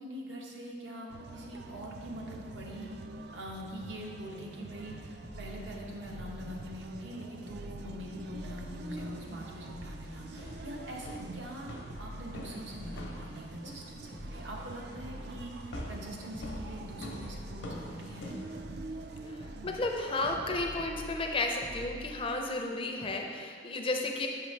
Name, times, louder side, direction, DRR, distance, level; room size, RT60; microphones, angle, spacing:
voice 1, 0.0-3.0 3.3-18.4, equal, 75° right, -1 dB, 0.9 m, -43 dB
sound 1, 1.1-20.4, right 3 dB, 60° right, 0.3 m, -47 dB
sound 2, 5.2-7.1 7.5-9.4 9.7-11.5 11.9-13.8 14.1-16.0 16.3-18.2 18.6-22.7 23.0-23.1, equal, 40° right, 0.8 m, -47 dB
sound 3, 8.8-19.1, left 1 dB, 75° left, 0.7 m, -47 dB
voice 2, 19.3-24.3, left 2 dB, 30° left, 3 dB, 0.4 m, -33 dB
5.8 x 5.6 x 3.2 m, 2.2 s
head